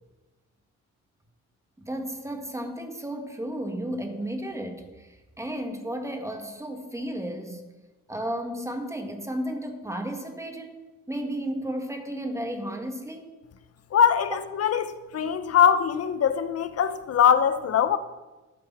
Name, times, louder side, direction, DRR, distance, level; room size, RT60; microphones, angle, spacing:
voice 1, 1.8-7.6 8.1-13.3, right 1 dB, 10° right, 1.7 m, -33 dB
voice 2, 13.9-18.0, left 8 dB, 55° left, 0.9 m, -22 dB
11.5 x 8.7 x 6.1 m
cardioid pair, 90°, 30 cm